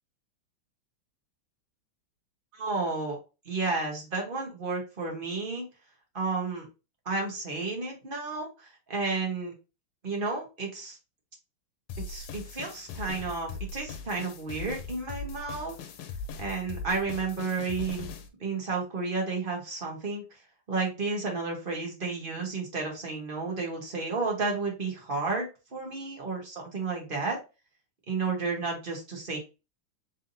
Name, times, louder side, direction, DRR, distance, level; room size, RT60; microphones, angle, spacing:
voice 1, 2.5-3.2 3.4-5.6 6.1-6.7 7.0-9.5 10.0-11.0 12.1-15.8 16.4-18.1 18.4-20.2 20.7-27.4 28.1-29.4, right 4 dB, 30° right, 0 dB, 1.4 m, -32 dB
sound 1, 11.9-18.3, left 3 dB, 90° left, 1.5 m, -40 dB
4.1 x 3.7 x 2.7 m, 0.28 s
omnidirectional pair, 2.3 m